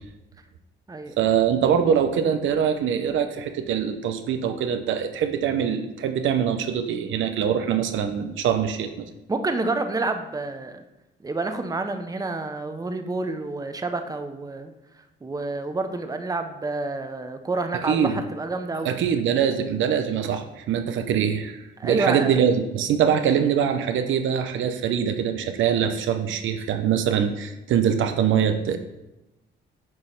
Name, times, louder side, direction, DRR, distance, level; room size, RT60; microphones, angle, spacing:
voice 1, 1.2-9.1 17.8-18.2 18.8-28.8, right 8 dB, 80° right, 7 dB, 0.7 m, -23 dB
voice 2, 9.3-10.8 11.2-14.7 15.2-18.9 21.8-22.4, right 3 dB, 20° right, 7 dB, 0.7 m, -28 dB
9.1 x 3.1 x 5.7 m, 0.98 s
cardioid pair, 90°, 20 cm